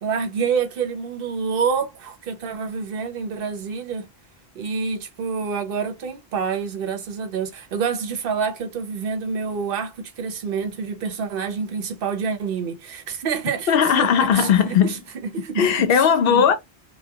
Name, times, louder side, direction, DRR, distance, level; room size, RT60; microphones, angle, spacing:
voice 1, 0.0-4.1 4.5-13.7 13.9-15.0 15.3-15.6 16.3-16.4, right 5 dB, 65° right, 0.8 m, -27 dB
voice 2, 13.7-14.9 15.6-16.5, left 7 dB, 70° left, 0.8 m, -17 dB
2.2 x 2.2 x 2.7 m
omnidirectional pair, 1.0 m